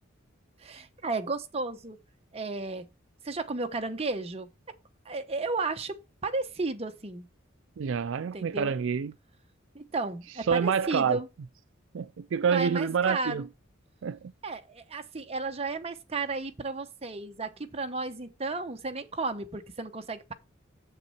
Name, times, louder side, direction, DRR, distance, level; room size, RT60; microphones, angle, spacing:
voice 1, 0.6-2.0 2.3-2.9 3.2-4.5 5.1-7.3 8.3-8.7 9.7-11.3 12.5-13.5 14.4-20.3, right 3 dB, 30° right, 0.9 m, -33 dB
voice 2, 7.8-9.1 10.5-11.2 11.9-13.5 14.0-14.2, right 6 dB, 70° right, 0.4 m, -27 dB
7.4 x 6.7 x 4.3 m
head